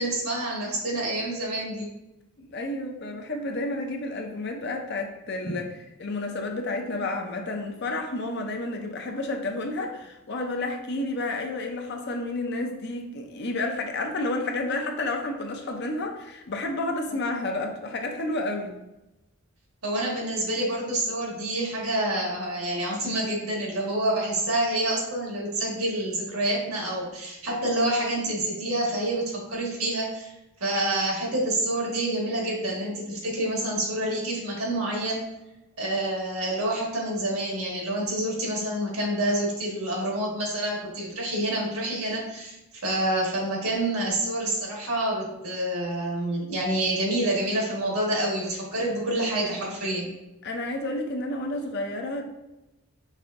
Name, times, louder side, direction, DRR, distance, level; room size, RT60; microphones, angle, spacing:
voice 1, 0.0-1.9 5.4-5.5 19.8-30.3 30.6-35.2 35.8-42.6 42.8-50.1, right 1 dB, 80° right, -3 dB, 1.5 m, -27 dB
voice 2, 2.4-5.7 6.0-18.8 50.4-52.2, left 2 dB, 50° left, 3 dB, 0.5 m, -30 dB
5.4 x 3.3 x 2.5 m, 0.96 s
head